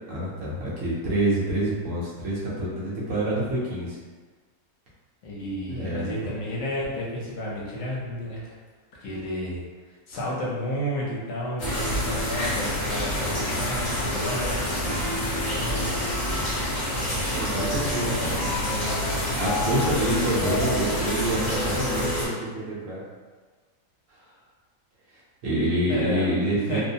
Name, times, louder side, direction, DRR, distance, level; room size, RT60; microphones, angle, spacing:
voice 1, 0.1-4.0 5.7-6.1 17.3-18.3 19.4-23.0 25.4-26.8, right 1 dB, 65° right, -7 dB, 1.0 m, -27 dB
voice 2, 5.2-8.5 9.0-9.6 10.1-16.1 18.0-19.4 20.1-20.3 25.9-26.4 26.7-26.8, equal, 65° left, -5 dB, 1.0 m, -32 dB
sound 1, 11.6-22.3, left 1 dB, 35° left, 0.6 m, -27 dB
2.8 x 2.1 x 2.6 m, 1.4 s
omnidirectional pair, 1.5 m